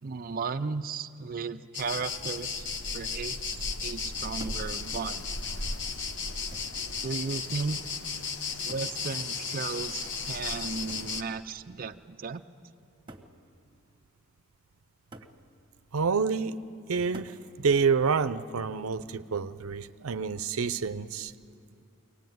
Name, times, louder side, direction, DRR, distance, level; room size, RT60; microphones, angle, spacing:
voice 1, 0.0-2.7 2.9-5.3 7.0-7.8 8.6-12.4, right 4 dB, 45° right, 7 dB, 0.5 m, -35 dB
sound 1, 1.7-11.2, left 4 dB, 60° left, 1.2 m, -35 dB
sound 2, 4.4-4.8 5.8-5.9 6.5-6.9 8.7-9.0 10.9-11.2 12.2-12.3 13.1-13.4 15.1-15.4 17.1-17.4 19.0-19.4, right 1 dB, 25° right, 1.4 m, -48 dB
voice 2, 15.9-16.6 16.9-21.3, right 5 dB, 90° right, 14 dB, 0.6 m, -28 dB
23.5 x 18.5 x 9.3 m, 2.5 s
head